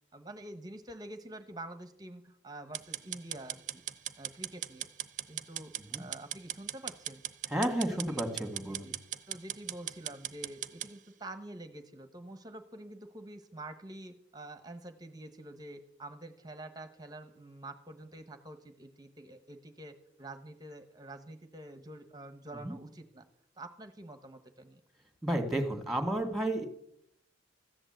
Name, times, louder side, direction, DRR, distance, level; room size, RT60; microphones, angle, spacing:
voice 1, 0.1-3.8 4.2-4.9 5.3-7.2 7.9-8.2 8.7-9.0 9.3-23.2 23.6-24.8, right 1 dB, 20° right, 8 dB, 1.1 m, -47 dB
sound 1, 2.7-10.9, right 12 dB, 40° right, 0.8 m, -39 dB
voice 2, 7.5-8.9 22.6-22.8 25.2-26.6, right 1 dB, ahead, 5 dB, 2.1 m, -32 dB
15.0 x 11.0 x 7.9 m, 0.73 s
head